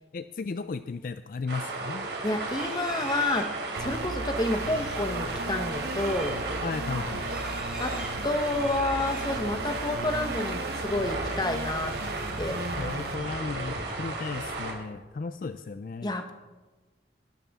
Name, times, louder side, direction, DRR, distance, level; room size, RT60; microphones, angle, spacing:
voice 1, 0.1-2.1 6.6-7.3 12.8-16.2, left 4 dB, 50° left, 11 dB, 0.4 m, -35 dB
sound 1, 1.5-14.7, right 2 dB, 80° right, 3.1 m, -34 dB
voice 2, 2.2-3.5 3.8-6.3 7.8-7.9 8.2-11.9 12.4-12.6 16.0-16.3, left 2 dB, 25° left, 6 dB, 1.1 m, -29 dB
Livestock farm animals working animals, 2.4-10.3 10.6-10.9 11.3-12.6 12.9-14.0, right 1 dB, 5° right, 5.3 m, -47 dB
sound 2, 3.8-13.2, right 2 dB, 60° right, 0.8 m, -37 dB
20.5 x 11.5 x 3.6 m, 1.3 s
head